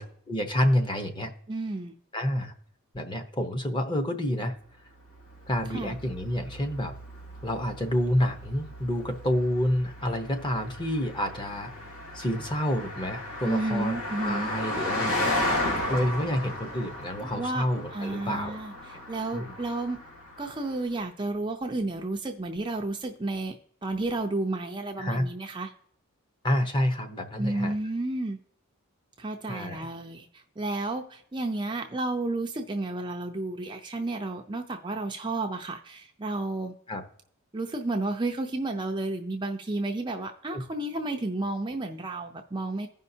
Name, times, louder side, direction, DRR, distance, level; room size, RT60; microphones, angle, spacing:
voice 1, 0.0-1.3 2.1-2.5 2.9-4.6 5.5-6.9 7.4-11.7 12.1-15.4 15.9-18.6 19.3-19.5 25.0-25.3 26.4-27.7 29.5-29.8 36.9-37.0 40.5-40.6, equal, 20° left, 6 dB, 0.9 m, -28 dB
voice 2, 1.5-1.9 5.7-6.0 13.4-14.5 17.4-20.0 20.4-23.6 23.8-25.7 27.4-28.4 29.2-36.7 37.5-42.9, right 2 dB, 20° right, 3 dB, 0.5 m, -32 dB
Car passing by, 5.1-20.8, left 1 dB, 80° left, 2.7 m, -35 dB
15.5 x 5.4 x 2.7 m, 0.64 s
head